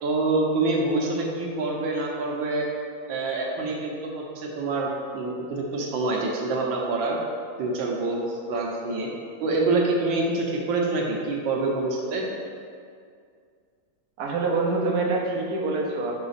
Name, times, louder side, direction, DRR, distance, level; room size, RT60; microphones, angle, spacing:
voice 1, 0.0-2.7 3.1-7.2 7.6-9.1 9.4-12.2, right 2 dB, 80° right, -1 dB, 1.5 m, -26 dB
voice 2, 14.2-16.1, right 3 dB, 60° right, -1 dB, 1.2 m, -25 dB
5.0 x 4.8 x 4.0 m, 2.2 s
omnidirectional pair, 2.1 m